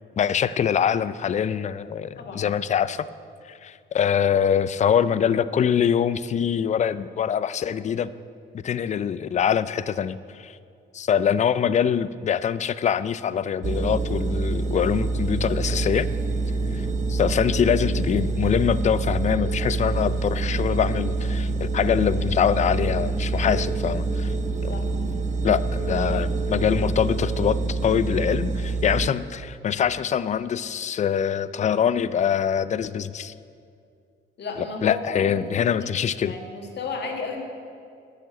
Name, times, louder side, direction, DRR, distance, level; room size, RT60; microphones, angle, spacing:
voice 1, 0.2-3.1 3.4-8.1 8.6-10.6 10.9-16.1 16.7-24.3 24.6-24.7 25.4-33.3 34.8-36.3, left 8 dB, 35° left, 16 dB, 0.4 m, -24 dB
sound 1, 13.6-29.1, right 3 dB, 35° right, 0.7 m, -26 dB
voice 2, 15.5-15.8 24.7-24.9 34.4-35.7 36.2-37.4, left 4 dB, 60° left, 2 dB, 1.8 m, -33 dB
10.0 x 6.4 x 7.7 m, 2.4 s
cardioid pair, 90°, 20 cm